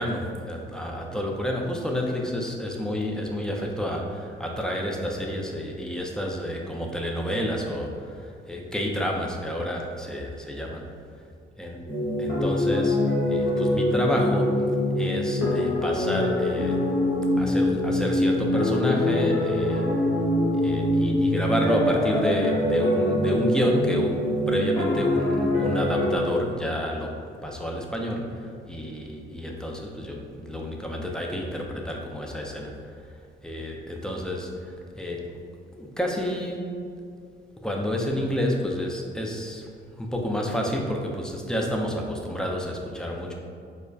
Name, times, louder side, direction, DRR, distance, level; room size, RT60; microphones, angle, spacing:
voice 1, 0.0-10.8 11.6-11.8 12.2-14.7 14.9-16.8 17.4-19.9 20.5-27.2 27.4-32.9 33.4-35.3 35.7-36.7 37.6-39.7 40.0-43.3, equal, 5° left, 0 dB, 0.5 m, -29 dB
sound 1, 11.9-26.2, left 1 dB, 90° left, 1.2 m, -24 dB
5.1 x 2.1 x 2.3 m, 2.3 s
cardioid pair, 90°, 20 cm